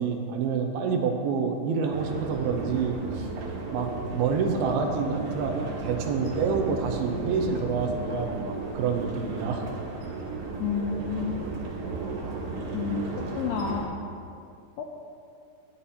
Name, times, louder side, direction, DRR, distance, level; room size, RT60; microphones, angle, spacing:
voice 1, 0.0-3.3 3.7-9.7, right 5 dB, 85° right, 3 dB, 2.6 m, -28 dB
sound 1, 1.9-13.9, right 3 dB, 65° right, 3.2 m, -35 dB
voice 2, 10.6-11.4 12.7-13.9 14.8-14.9, left 6 dB, 80° left, 0 dB, 2.1 m, -30 dB
14.5 x 9.7 x 2.9 m, 2.4 s
omnidirectional pair, 4.5 m